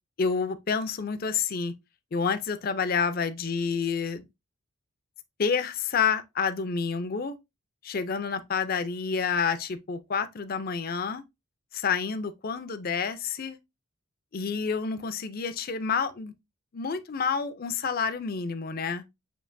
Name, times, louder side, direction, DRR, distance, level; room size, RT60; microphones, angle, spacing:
voice 1, 0.2-1.7 2.1-4.3 5.4-7.4 7.8-11.2 11.7-13.6 14.3-16.3 16.7-19.0, left 5 dB, 45° left, 0.5 m, -29 dB
7.0 x 2.9 x 2.6 m
head